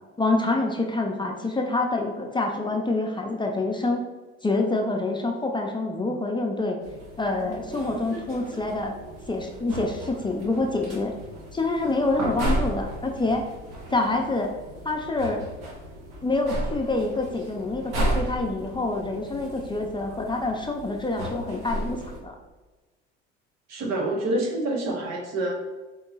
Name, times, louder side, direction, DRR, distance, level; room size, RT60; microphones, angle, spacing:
voice 1, 0.2-4.0 4.4-6.8 7.2-8.9 9.3-11.1 11.5-13.4 13.9-14.5 14.8-15.5 16.2-22.3, left 2 dB, 15° left, 1 dB, 0.6 m, -26 dB
sound 1, 6.8-22.2, right 1 dB, 75° right, 1.3 m, -34 dB
voice 2, 23.7-25.5, right 1 dB, 60° right, 1 dB, 1.1 m, -27 dB
4.5 x 2.8 x 4.0 m, 1.2 s
supercardioid pair, 80°, 31 cm